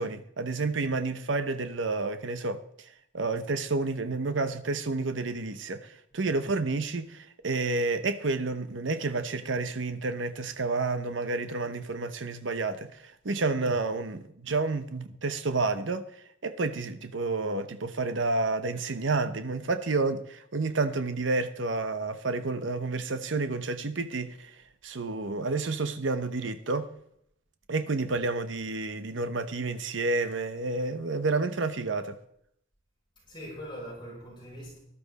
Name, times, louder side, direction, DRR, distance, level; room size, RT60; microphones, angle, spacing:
voice 1, 0.0-16.0 16.4-24.6 24.8-26.9 27.7-32.2, right 3 dB, 80° right, 0.9 m, -30 dB
voice 2, 6.1-6.7 9.2-9.3 33.3-34.8, equal, 25° left, 6.8 m, -43 dB
13.0 x 12.5 x 4.1 m
head